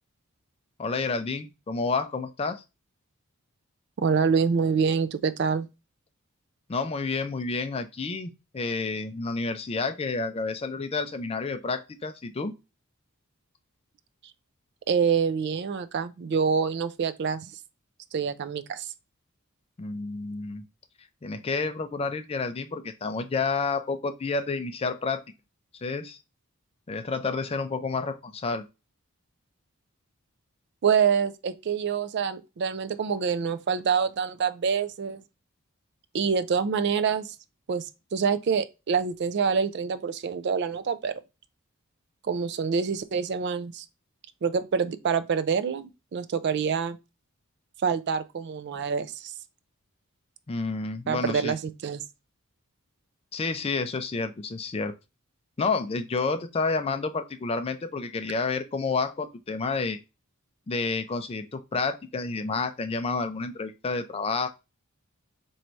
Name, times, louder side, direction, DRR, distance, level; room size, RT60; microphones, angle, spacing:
voice 1, 0.8-2.6 6.7-12.5 19.8-20.6 21.2-25.2 25.7-26.2 26.9-28.6 50.5-51.5 53.3-54.9 55.6-60.0 60.7-64.5, left 4 dB, 25° left, 0.4 m, -30 dB
voice 2, 4.0-5.7 14.9-17.5 18.1-18.9 30.8-35.2 36.1-37.4 37.7-41.2 42.2-43.8 44.4-47.0 47.8-49.3 51.1-52.0, right 6 dB, 50° right, 0.3 m, -26 dB
3.1 x 2.6 x 4.4 m
head